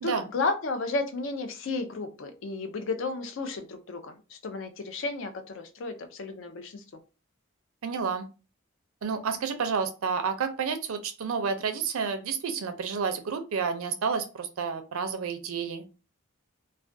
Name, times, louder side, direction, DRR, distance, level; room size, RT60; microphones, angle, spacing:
voice 1, 0.0-6.8, left 3 dB, 60° left, 7 dB, 0.4 m, -33 dB
voice 2, 7.8-8.3 9.0-15.8, right 5 dB, 75° right, 8 dB, 0.4 m, -30 dB
2.3 x 2.2 x 2.5 m, 0.32 s
head